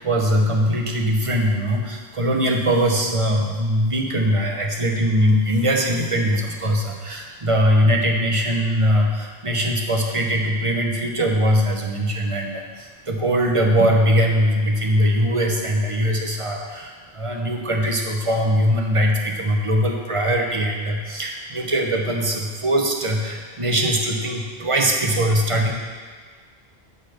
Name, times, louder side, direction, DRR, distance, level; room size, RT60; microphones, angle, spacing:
voice 1, 0.0-25.7, equal, 30° right, 1 dB, 0.9 m, -21 dB
8.8 x 4.1 x 6.5 m, 1.5 s
omnidirectional pair, 1.1 m